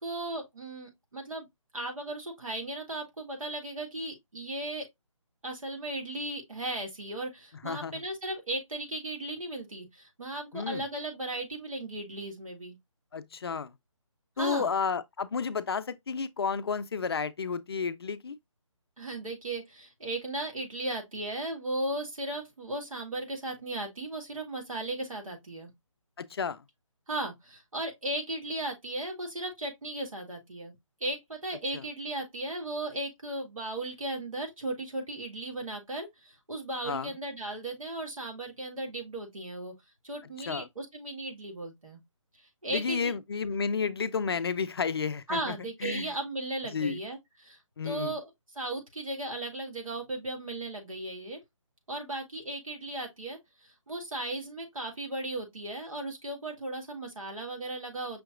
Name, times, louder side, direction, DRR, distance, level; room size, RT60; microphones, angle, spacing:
voice 1, 0.0-1.5 1.7-4.9 5.4-12.8 14.4-14.7 19.0-25.7 27.1-30.7 31.0-39.7 40.0-42.0 42.6-43.1 45.3-47.6 47.8-48.3 48.6-51.4 51.9-58.2, right 1 dB, 85° right, 1.9 m, -36 dB
voice 2, 7.6-8.0 10.5-10.8 13.1-13.7 14.4-18.4 26.2-26.6 31.7-31.8 36.8-37.1 40.5-40.7 42.7-45.6 45.8-46.1 46.7-47.0 47.8-48.1, left 5 dB, 50° left, 0.4 m, -31 dB
5.7 x 2.8 x 2.4 m
figure-of-eight pair, 155°, 17 cm